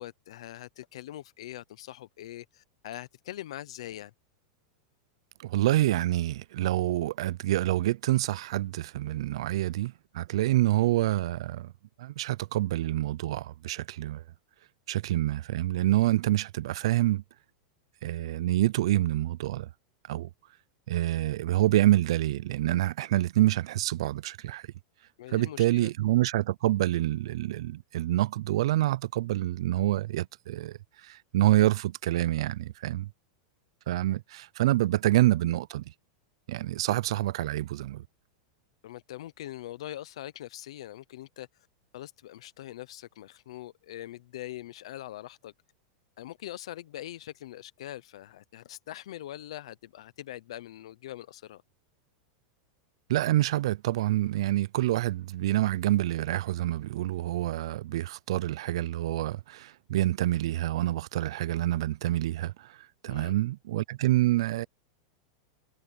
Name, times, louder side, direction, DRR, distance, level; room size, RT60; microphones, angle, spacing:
voice 1, 0.0-4.1 25.2-25.9 38.8-41.7 41.9-45.5 46.2-51.6 63.1-63.3, left 13 dB, 65° left, 0.7 m, -42 dB
voice 2, 5.4-11.7 12.0-14.2 14.9-17.2 18.0-19.7 20.1-20.3 20.9-24.6 25.3-33.1 33.9-35.8 36.5-38.0 53.1-62.8 63.0-64.7, right 15 dB, 60° right, 0.4 m, -27 dB
supercardioid pair, 180°, 3 cm